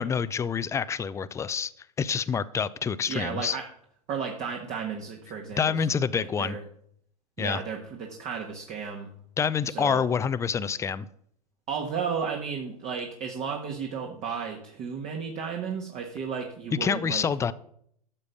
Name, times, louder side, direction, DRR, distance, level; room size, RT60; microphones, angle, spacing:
voice 1, 0.0-1.7 2.0-3.6 5.6-6.6 7.4-7.6 9.4-11.1 16.8-17.5, left 6 dB, 15° left, 0.5 m, -27 dB
voice 2, 3.1-3.7 4.1-6.6 7.4-9.1 9.7-10.0 11.7-17.3, right 6 dB, 40° right, 1.8 m, -34 dB
13.0 x 6.8 x 5.2 m
hypercardioid pair, 100°, 20 cm